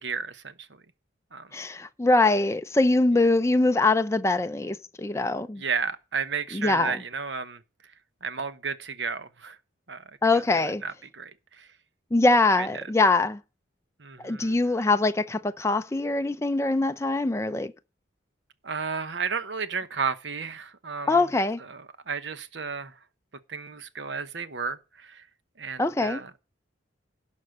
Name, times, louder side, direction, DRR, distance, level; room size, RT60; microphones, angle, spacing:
voice 1, 0.0-0.5 1.3-1.5 5.6-7.6 8.2-9.6 9.9-10.0 10.5-11.3 11.6-11.7 12.6-12.8 14.0-14.8 18.6-21.2 21.7-22.9 23.5-25.2 25.6-26.3, right 5 dB, 65° right, 1.0 m, -33 dB
voice 2, 1.5-5.6 6.5-7.0 10.2-10.8 12.1-13.4 14.2-17.7 21.1-21.6 25.8-26.2, left 2 dB, 15° left, 0.5 m, -23 dB
11.5 x 5.4 x 7.8 m
head